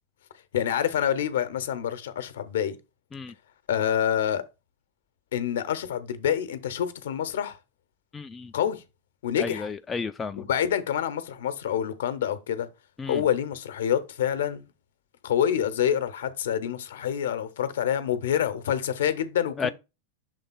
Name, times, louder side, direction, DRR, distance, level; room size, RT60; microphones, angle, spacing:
voice 1, 0.5-2.8 3.7-4.4 5.3-7.6 8.5-8.8 9.2-9.7 10.4-12.7 13.1-14.6 15.2-19.7, left 9 dB, 60° left, 0.8 m, -27 dB
voice 2, 8.1-8.5 9.4-10.5 13.0-13.2 19.6-19.7, left 4 dB, 15° left, 0.3 m, -32 dB
6.6 x 3.6 x 4.0 m
figure-of-eight pair, 90°, 0 cm